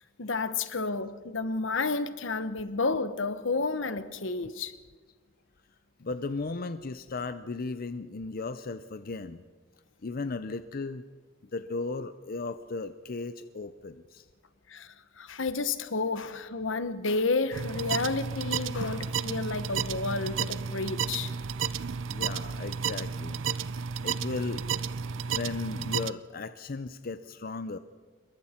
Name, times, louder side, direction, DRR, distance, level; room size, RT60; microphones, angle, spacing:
voice 1, 0.2-4.7 14.7-21.3, left 3 dB, 75° left, 1.1 m, -31 dB
voice 2, 6.0-9.4 10.0-11.0 11.5-14.3 21.6-21.7 22.1-23.4 24.0-24.7 25.3-27.8, left 3 dB, 50° left, 0.6 m, -36 dB
sound 1, 17.5-26.1, right 6 dB, 70° right, 0.5 m, -32 dB
27.0 x 22.5 x 4.4 m
head